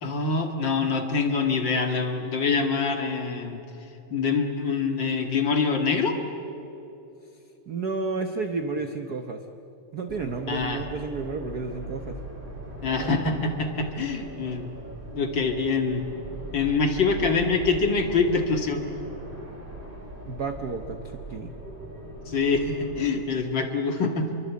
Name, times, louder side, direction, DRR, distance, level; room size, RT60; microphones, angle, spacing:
voice 1, 0.0-3.6 4.1-6.2 10.5-10.8 12.8-14.7 15.1-16.0 16.5-18.8 22.3-24.3, left 4 dB, 45° left, 4 dB, 2.3 m, -25 dB
voice 2, 7.7-9.4 9.9-12.2 13.0-13.1 20.3-21.5, right 4 dB, 75° right, 7 dB, 0.8 m, -31 dB
sound 1, 10.1-23.1, right 1 dB, 15° right, 4.1 m, -40 dB
27.0 x 23.0 x 8.5 m, 2.9 s
omnidirectional pair, 3.3 m